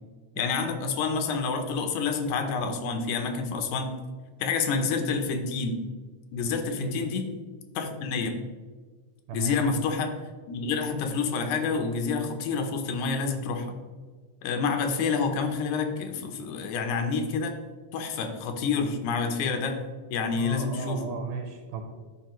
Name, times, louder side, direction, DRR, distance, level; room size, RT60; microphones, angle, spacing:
voice 1, 0.4-3.9 4.4-5.8 6.3-7.3 7.8-8.4 9.3-10.1 10.5-13.8 14.4-17.6 17.9-19.8 20.1-21.0, left 4 dB, 75° left, 6 dB, 2.1 m, -28 dB
voice 2, 6.8-7.1 9.3-9.5 14.9-15.0 20.3-21.8, right 5 dB, 80° right, 4 dB, 2.1 m, -35 dB
13.0 x 4.6 x 3.0 m, 1.5 s
omnidirectional pair, 3.7 m